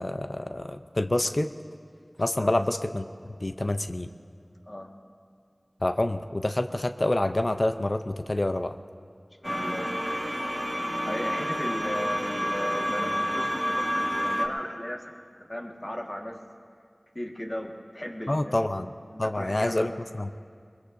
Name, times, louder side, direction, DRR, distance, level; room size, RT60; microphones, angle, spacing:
voice 1, 0.0-1.5 2.2-3.1 3.4-4.1 5.8-8.7 18.3-18.9 19.2-19.9 20.2-20.3, left 1 dB, 55° left, 8 dB, 0.5 m, -27 dB
voice 2, 9.4-9.9 11.1-15.1 15.4-16.4 17.1-18.6 19.1-19.9, left 1 dB, 35° left, 0 dB, 1.6 m, -36 dB
sound 1, 9.4-14.5, equal, ahead, 1.6 m, -29 dB
22.5 x 21.5 x 2.6 m, 2.2 s
wide cardioid pair, 45°, 0 cm